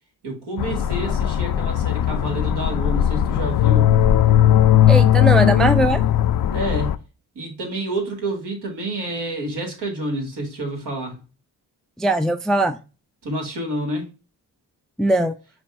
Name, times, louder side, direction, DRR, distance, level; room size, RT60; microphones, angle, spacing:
voice 1, 0.2-3.9 6.5-7.0 7.3-11.2 13.2-14.1, right 1 dB, 70° right, 1.8 m, -28 dB
sound 1, 0.6-7.0, left 11 dB, 55° left, 0.5 m, -18 dB
voice 2, 4.9-6.0 12.0-12.8 15.0-15.3, right 1 dB, ahead, 0.4 m, -20 dB
5.1 x 2.3 x 3.4 m
cardioid pair, 55°, 42 cm